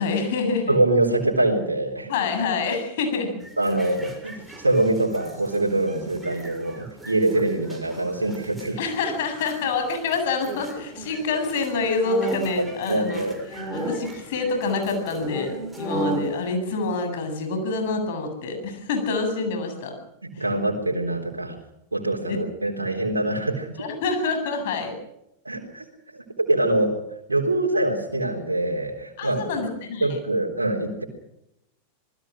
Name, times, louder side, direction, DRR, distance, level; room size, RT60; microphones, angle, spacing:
voice 1, 0.0-0.8 2.1-3.4 8.8-13.2 13.7-20.0 20.4-20.5 22.3-22.4 22.9-23.0 23.8-25.0 29.2-30.2, left 4 dB, 55° left, 5 dB, 8.0 m, -26 dB
voice 2, 0.7-2.1 3.6-8.8 12.6-13.9 16.1-16.2 20.2-21.6 21.9-23.8 25.4-25.9 26.1-27.0 27.3-29.5 30.0-31.0, right 2 dB, 80° right, 0 dB, 3.8 m, -24 dB
sound 1, 3.4-16.5, right 1 dB, 5° right, 6.6 m, -36 dB
27.5 x 20.0 x 6.4 m, 0.82 s
figure-of-eight pair, 90°, 0 cm